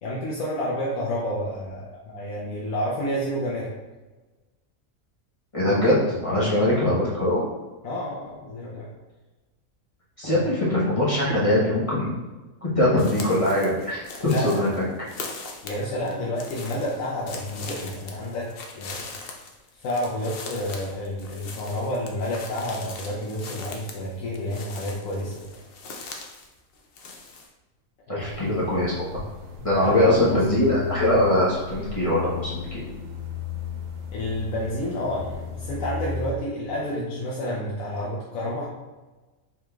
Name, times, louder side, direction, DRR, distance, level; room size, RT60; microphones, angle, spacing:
voice 1, 0.0-3.7 6.4-6.7 7.8-8.9 10.2-10.5 14.2-14.7 15.6-18.5 18.7-19.1 19.7-25.5 28.1-28.3 29.6-30.8 34.1-38.6, left 1 dB, 80° left, -5 dB, 1.1 m, -30 dB
voice 2, 5.5-7.4 10.2-12.2 12.7-14.8 28.1-29.2 29.6-32.8, left 1 dB, 30° left, -8 dB, 0.9 m, -22 dB
sound 1, 13.0-26.5 26.7-27.5, left 3 dB, 60° left, 0.7 m, -40 dB
sound 2, 28.2-36.3, left 6 dB, 75° right, 1.1 m, -35 dB
4.6 x 3.6 x 2.3 m, 1.2 s
omnidirectional pair, 1.4 m